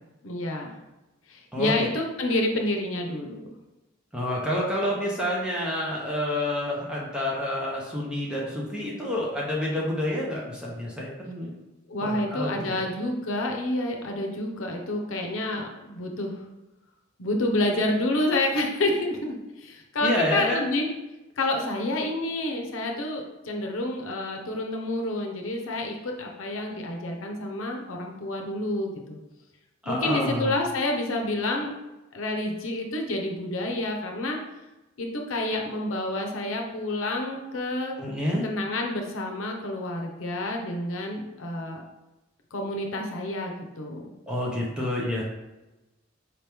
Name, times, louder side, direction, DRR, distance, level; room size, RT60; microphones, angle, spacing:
voice 1, 0.2-0.7 1.3-3.5 11.9-16.4 17.2-20.9 21.4-29.2 29.9-31.7 32.1-34.4 35.0-38.0 38.4-41.8 42.5-44.1, left 1 dB, 85° left, 2 dB, 0.7 m, -29 dB
voice 2, 1.5-1.9 4.1-11.6 12.1-12.9 20.0-20.6 29.8-30.5 38.0-38.5 44.3-45.2, left 1 dB, 5° right, -4 dB, 0.7 m, -28 dB
4.7 x 3.0 x 3.4 m, 1.0 s
head